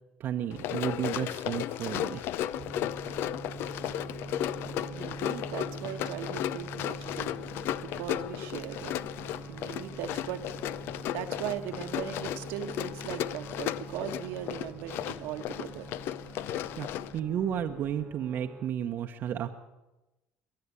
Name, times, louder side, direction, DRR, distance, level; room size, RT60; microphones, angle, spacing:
voice 1, 0.2-2.3 16.8-19.5, right 9 dB, 55° right, 5 dB, 0.8 m, -32 dB
Run, 0.5-17.2, left 12 dB, 65° left, 0.5 m, -35 dB
sound 1, 1.8-18.1, left 5 dB, 85° left, 1.7 m, -54 dB
sound 2, 2.5-18.7, right 4 dB, 20° right, 0.5 m, -45 dB
voice 2, 4.6-7.4 7.8-9.0 9.5-10.5 11.1-15.9, right 10 dB, 75° right, 6 dB, 1.2 m, -39 dB
22.0 x 7.8 x 8.4 m, 1.0 s
supercardioid pair, 90°, 4 cm